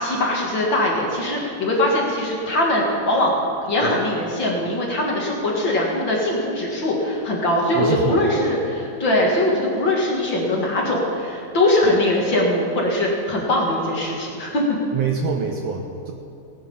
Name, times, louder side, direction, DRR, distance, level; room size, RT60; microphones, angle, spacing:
voice 1, 0.0-3.4 3.6-14.8, left 1 dB, 40° left, -2 dB, 2.2 m, -21 dB
voice 2, 7.7-8.5 14.9-16.1, right 6 dB, 70° right, 3 dB, 1.7 m, -25 dB
18.5 x 9.2 x 5.5 m, 2.8 s
omnidirectional pair, 3.5 m